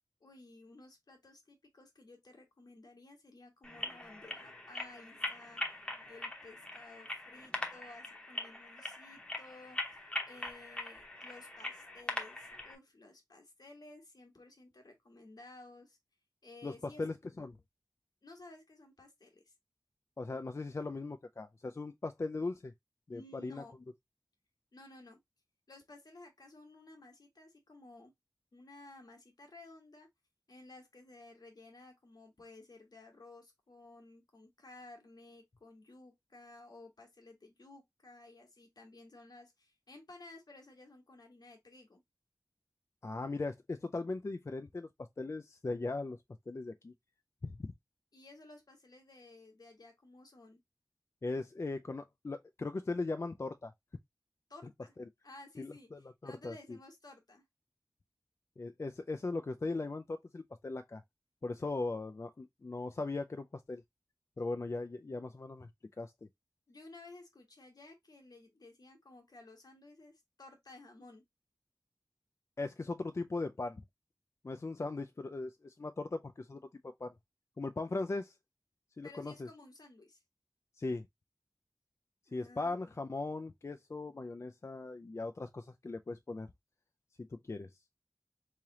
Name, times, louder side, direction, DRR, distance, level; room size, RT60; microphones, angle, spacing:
voice 1, 0.2-9.8 10.2-16.0 16.4-17.0 18.2-19.5 23.1-23.8 24.7-25.2 25.7-28.1 28.5-30.1 30.5-42.0 48.1-50.6 54.5-54.9 55.2-55.9 56.2-57.4 66.7-71.2 79.0-80.2 82.3-82.7, left 2 dB, 80° left, 1.3 m, -55 dB
sound 1, 3.6-12.8, left 1 dB, 15° left, 0.9 m, -42 dB
voice 2, 17.0-17.6 20.2-22.7 23.1-23.6 43.0-44.9 45.2-46.2 46.5-46.9 47.4-47.7 51.2-53.7 55.6-56.8 58.6-61.0 61.4-63.8 64.4-65.7 66.0-66.3 72.6-73.8 74.4-76.6 77.0-77.1 77.6-78.3 79.0-79.5 80.8-81.1 82.3-86.5 87.3-87.7, left 3 dB, 45° left, 0.3 m, -39 dB
3.6 x 3.2 x 2.8 m
wide cardioid pair, 55°, 7 cm